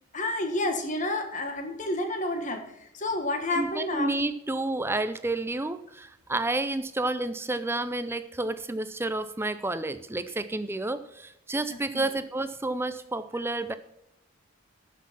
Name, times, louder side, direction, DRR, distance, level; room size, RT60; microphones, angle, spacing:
voice 1, 0.1-4.1 11.7-12.1, left 1 dB, 35° left, 6 dB, 1.5 m, -30 dB
voice 2, 3.6-13.7, right 2 dB, 10° right, 12 dB, 0.4 m, -30 dB
13.0 x 6.1 x 5.8 m, 0.82 s
head